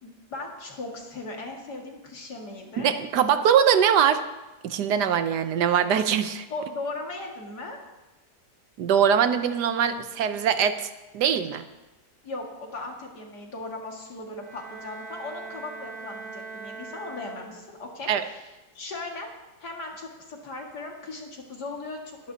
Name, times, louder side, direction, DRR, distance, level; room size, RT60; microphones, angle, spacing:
voice 1, 0.0-2.9 6.5-7.8 12.2-19.3 19.6-22.3, left 2 dB, 85° left, 0 dB, 2.7 m, -38 dB
voice 2, 2.8-4.2 4.6-6.5 8.8-11.6 18.1-18.2, right 8 dB, 90° right, 10 dB, 1.4 m, -22 dB
Bowed string instrument, 14.4-17.9, right 4 dB, 25° right, 2.2 m, -41 dB
21.5 x 11.0 x 2.8 m, 1.1 s
omnidirectional pair, 1.7 m